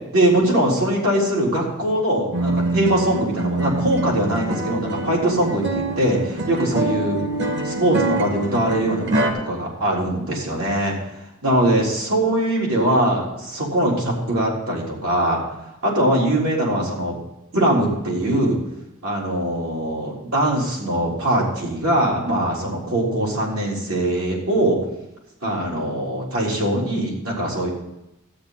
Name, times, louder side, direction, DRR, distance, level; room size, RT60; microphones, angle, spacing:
voice 1, 0.1-7.2 7.6-11.0 11.4-15.4 15.8-17.1 17.5-18.6 19.0-24.8 25.4-27.7, right 1 dB, 80° right, -3 dB, 3.9 m, -21 dB
sound 1, 2.3-9.3, right 2 dB, 55° right, 1.6 m, -25 dB
13.0 x 9.5 x 4.0 m, 0.89 s
head